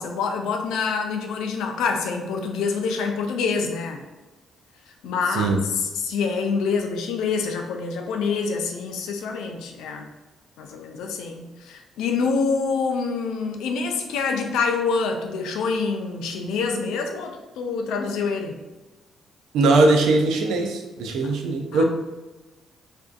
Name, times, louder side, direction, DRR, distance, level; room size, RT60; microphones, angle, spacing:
voice 1, 0.0-4.0 5.0-10.1 10.6-18.6 21.2-21.3 21.7-21.8, left 5 dB, 90° left, 4 dB, 0.3 m, -26 dB
voice 2, 19.5-21.8, right 3 dB, 85° right, 4 dB, 0.3 m, -20 dB
2.5 x 2.2 x 2.4 m, 1.1 s
cardioid pair, 90°, 0 cm